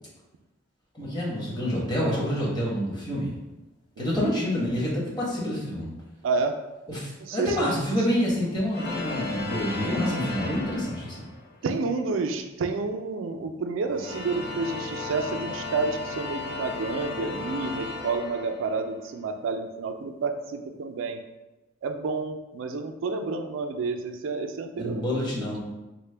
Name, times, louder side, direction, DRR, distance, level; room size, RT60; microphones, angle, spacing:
voice 1, 0.9-3.3 4.0-5.9 6.9-11.3 24.8-25.6, equal, 20° left, -5 dB, 1.0 m, -27 dB
voice 2, 6.2-6.6 7.2-7.7 11.6-21.2 21.8-25.0, right 4 dB, 70° right, 6 dB, 0.4 m, -30 dB
sound 1, 8.7-11.5 13.8-19.0, left 3 dB, 55° left, 0.7 m, -35 dB
4.0 x 2.1 x 3.3 m, 1.0 s
head